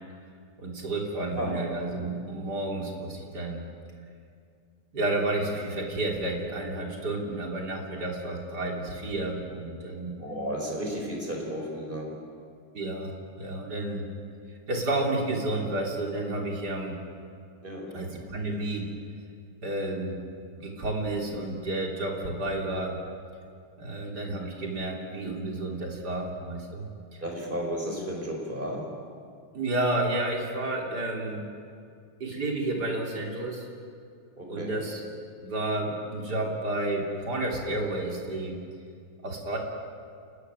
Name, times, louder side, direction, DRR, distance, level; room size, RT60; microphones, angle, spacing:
voice 1, 0.6-3.6 4.9-10.1 12.7-14.1 14.7-17.0 17.9-18.9 19.6-20.2 20.6-23.0 23.8-26.9 29.5-31.4 32.2-33.7 34.5-35.0 35.4-38.6 39.2-39.6, right 2 dB, 55° right, 0 dB, 3.8 m, -31 dB
voice 2, 10.2-12.1 17.6-18.0 27.2-28.8 34.4-34.8, equal, 25° right, 0 dB, 4.8 m, -33 dB
29.5 x 13.5 x 9.8 m, 2.2 s
omnidirectional pair, 2.1 m